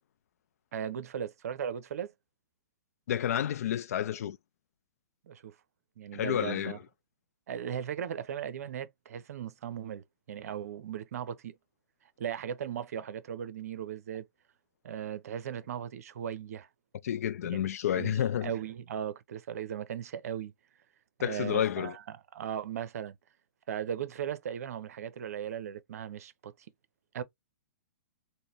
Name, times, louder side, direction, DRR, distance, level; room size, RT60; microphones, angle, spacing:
voice 1, 0.7-2.1 5.2-5.6 6.0-6.8 7.5-11.5 12.2-14.3 14.8-16.7 17.5-17.6 17.9-20.5 21.2-23.2 23.7-26.5 27.1-27.2, right 9 dB, 60° right, 0.6 m, -37 dB
voice 2, 3.1-4.4 6.1-6.8 17.0-18.5 21.2-22.0, left 10 dB, 60° left, 0.4 m, -30 dB
4.0 x 2.1 x 3.1 m
figure-of-eight pair, 120°, 9 cm